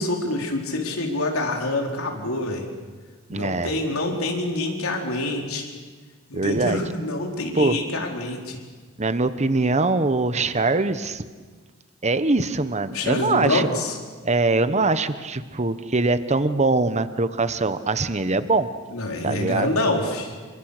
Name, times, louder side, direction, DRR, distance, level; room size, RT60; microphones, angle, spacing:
voice 1, 0.0-2.6 3.3-5.7 6.3-8.6 12.9-14.0 18.9-20.3, left 2 dB, 85° left, 1 dB, 4.4 m, -26 dB
voice 2, 3.3-3.7 6.3-6.8 7.5-7.8 9.0-11.2 12.0-13.7 14.2-18.7 19.2-19.7, right 3 dB, 30° right, 12 dB, 1.1 m, -22 dB
28.5 x 25.5 x 6.7 m, 1.4 s
head